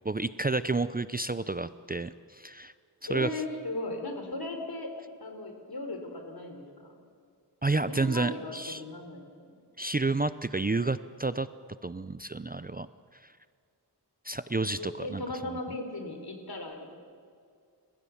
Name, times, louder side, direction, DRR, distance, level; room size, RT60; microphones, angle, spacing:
voice 1, 0.0-2.7 3.1-3.3 7.6-8.8 9.8-11.5 11.8-12.9 13.2-13.3 14.2-15.2, right 3 dB, 20° right, 14 dB, 0.5 m, -30 dB
voice 2, 3.1-7.0 7.9-9.6 14.7-16.9, left 2 dB, 60° left, 4 dB, 3.9 m, -37 dB
30.0 x 15.5 x 7.2 m, 2.2 s
wide cardioid pair, 70°, 41 cm